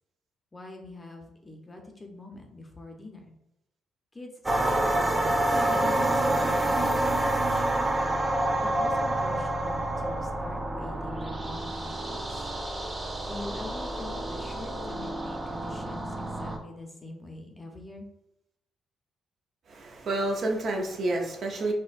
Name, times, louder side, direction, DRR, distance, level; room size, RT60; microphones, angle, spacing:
voice 1, 0.5-3.3 4.1-7.9 8.6-12.4 13.2-18.1, left 2 dB, 20° left, 2 dB, 0.6 m, -44 dB
sound 1, 4.5-16.6, right 1 dB, 20° right, 0.5 m, -28 dB
voice 2, 19.7-21.7, right 2 dB, 60° right, 1 dB, 0.6 m, -29 dB
4.2 x 2.2 x 2.4 m, 0.85 s
cardioid pair, 90°, 0 cm